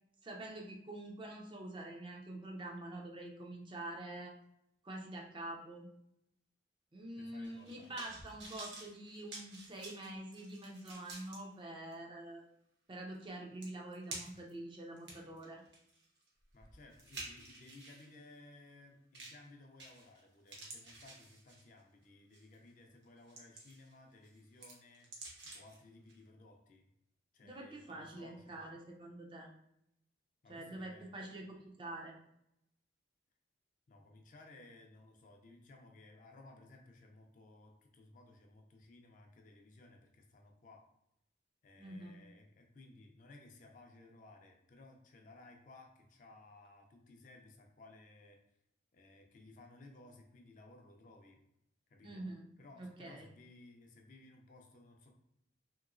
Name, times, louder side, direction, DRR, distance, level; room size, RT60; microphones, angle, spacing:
voice 1, 0.2-4.3 4.8-5.9 6.9-12.4 12.9-15.6 27.4-29.5 30.5-32.1 41.8-42.2 52.0-52.4 52.8-53.3, right 1 dB, 25° right, 0 dB, 0.4 m, -46 dB
voice 2, 7.2-7.9 16.5-26.8 27.3-28.6 30.4-31.4 33.9-40.8 41.6-48.4 48.9-51.4 51.9-52.3 52.6-55.1, left 2 dB, 45° left, 2 dB, 0.4 m, -58 dB
sound 1, 7.4-11.4 11.9-12.0 13.2-13.3 13.6-14.5 15.0-18.1 19.1-19.5 19.8-20.2 20.5-21.8 22.3-22.5 23.0-23.9 24.2-25.8 26.1-26.2, right 2 dB, 65° right, 0.9 m, -50 dB
2.9 x 2.9 x 2.4 m, 0.80 s
head